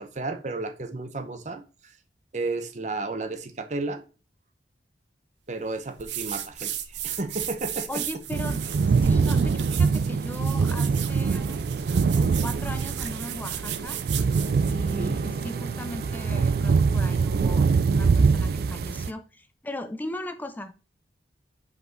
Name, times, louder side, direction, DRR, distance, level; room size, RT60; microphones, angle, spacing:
voice 1, 0.0-1.9 2.3-4.0 5.5-8.0 15.0-15.2, right 3 dB, 40° right, 0.8 m, -33 dB
sound 1, 6.0-15.0, right 10 dB, 90° right, 0.7 m, -36 dB
voice 2, 7.9-11.6 12.2-14.0 14.7-20.8, left 1 dB, 10° left, 0.4 m, -38 dB
sound 2, 8.3-19.1, right 5 dB, 60° right, 0.3 m, -24 dB
Bowed string instrument, 14.3-18.1 18.4-18.5, right 3 dB, 40° left, 1.4 m, -46 dB
5.3 x 5.1 x 3.9 m
head